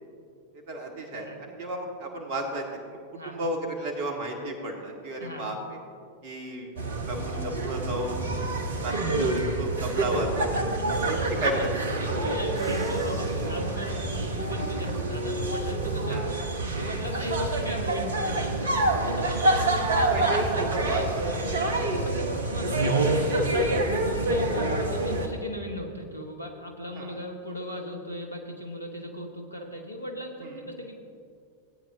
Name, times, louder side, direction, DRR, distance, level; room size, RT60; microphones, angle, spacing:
voice 1, 0.7-2.6 3.3-5.6 6.2-8.4 8.8-10.7 11.1-12.2 16.1-16.2 19.6-19.7 20.1-21.2 23.8-24.0 27.0-27.1, right 1 dB, 45° right, 2 dB, 1.8 m, -33 dB
voice 2, 5.2-5.5 9.8-10.8 12.0-20.3 20.8-21.1 21.5-30.9, left 1 dB, 85° left, 1 dB, 1.4 m, -37 dB
sound 1, 6.8-25.3, right 2 dB, 65° right, 1.0 m, -27 dB
Bus / Engine, 8.0-15.9, equal, 10° right, 1.1 m, -44 dB
17.0 x 9.2 x 2.8 m, 2.3 s
figure-of-eight pair, 90°, 0 cm